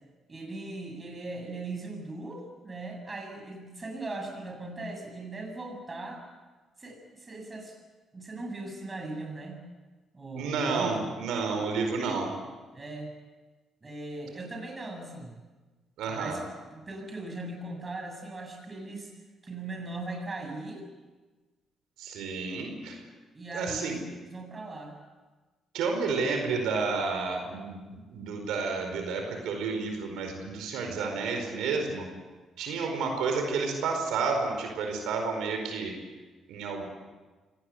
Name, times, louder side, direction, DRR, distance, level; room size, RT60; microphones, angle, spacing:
voice 1, 0.3-6.2 6.8-7.8 8.1-9.6 10.1-11.1 11.4-11.6 12.7-13.1 13.8-15.3 16.1-16.4 16.7-19.1 19.4-20.8 23.3-25.0, right 2 dB, 25° right, 3 dB, 7.2 m, -39 dB
voice 2, 10.4-12.4 16.0-16.4 22.0-23.0 23.5-24.0 25.7-32.1 32.6-35.9 36.5-36.8, right 4 dB, 90° right, 4 dB, 4.7 m, -30 dB
25.0 x 18.5 x 8.2 m, 1.3 s
cardioid pair, 90°, 0 cm